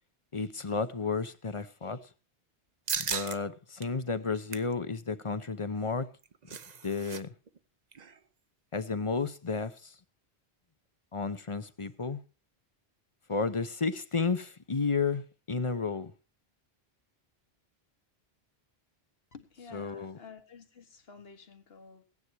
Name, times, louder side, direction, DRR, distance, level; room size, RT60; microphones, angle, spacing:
voice 1, 0.3-2.0 3.0-6.1 6.8-7.3 8.7-9.9 11.1-12.2 13.3-16.1 19.7-20.2, left 4 dB, 35° left, 0.8 m, -32 dB
sound 1, 2.9-3.4 3.8-3.9 4.3-4.7 6.0-7.2 7.5-7.6 7.9-8.2, right 6 dB, 45° right, 0.8 m, -36 dB
voice 2, 19.3-22.0, left 5 dB, 70° left, 1.8 m, -51 dB
16.5 x 9.8 x 4.7 m
omnidirectional pair, 1.1 m